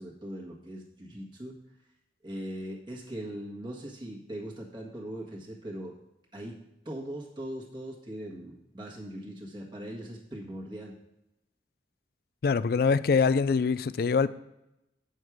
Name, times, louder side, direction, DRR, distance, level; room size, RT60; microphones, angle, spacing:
voice 1, 0.0-1.6 2.2-6.0 6.3-6.6 6.8-10.9, right 1 dB, 25° right, -3 dB, 1.5 m, -40 dB
voice 2, 12.4-14.3, left 5 dB, 55° left, 16 dB, 0.4 m, -24 dB
9.0 x 6.5 x 4.7 m, 0.88 s
head